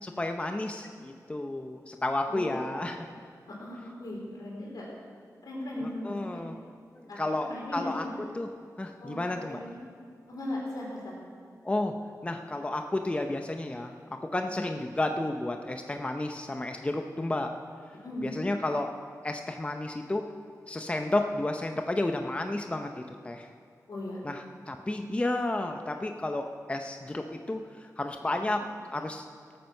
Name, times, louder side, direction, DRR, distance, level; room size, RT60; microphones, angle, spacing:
voice 1, 0.0-3.1 5.8-6.5 7.2-8.1 8.3-8.5 8.8-9.6 11.6-11.9 12.2-13.9 14.2-17.5 18.2-18.9 19.2-20.3 20.7-23.5 24.2-28.6 28.9-29.2, left 2 dB, 20° left, 5 dB, 0.6 m, -32 dB
voice 2, 2.3-2.9 3.5-4.9 5.4-6.4 7.1-8.2 9.0-9.2 9.4-9.8 10.3-11.1 14.5-14.7 18.0-18.3 23.9-24.2 28.3-28.5, left 1 dB, 80° left, -3 dB, 4.3 m, -38 dB
17.5 x 9.0 x 6.5 m, 2.2 s
wide cardioid pair, 125°, 7 cm